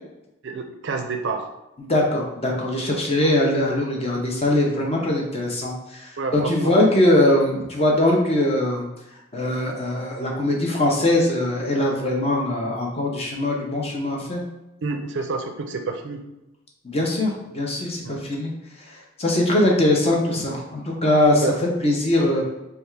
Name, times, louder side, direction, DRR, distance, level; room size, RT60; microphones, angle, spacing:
voice 1, 0.4-1.5 6.2-6.7 14.8-16.2 18.0-18.2 21.4-21.5, right 4 dB, 60° right, 5 dB, 0.5 m, -28 dB
voice 2, 1.8-8.9 9.3-14.4 16.8-18.5 19.2-21.4 21.8-22.4, left 1 dB, 30° left, -1 dB, 0.7 m, -21 dB
3.4 x 2.4 x 4.5 m, 0.94 s
head